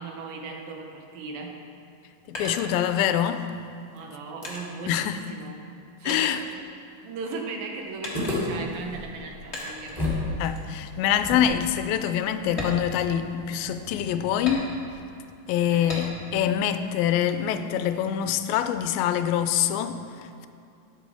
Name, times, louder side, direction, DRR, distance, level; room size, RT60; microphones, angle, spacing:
voice 1, 0.0-1.6 3.9-5.6 6.0-6.4 7.0-10.3 15.7-16.2, right 3 dB, 75° right, 2.7 m, -37 dB
sound 1, 2.0-3.3 3.9-5.8 6.1-7.2 8.0-8.7 9.5-10.0 10.4-10.7 11.1-11.2 11.7-11.8 12.5-13.7 14.5-15.1 15.9-16.4 16.8-17.7, left 1 dB, 35° left, 1.0 m, -38 dB
voice 2, 2.3-3.5 4.9-5.2 6.0-6.4 10.4-14.7 15.5-20.5, left 10 dB, 80° left, 2.3 m, -25 dB
sound 2, 8.1-10.3 10.6-10.7 11.2-14.3, left 2 dB, 10° left, 2.3 m, -33 dB
12.5 x 10.5 x 3.5 m
omnidirectional pair, 4.3 m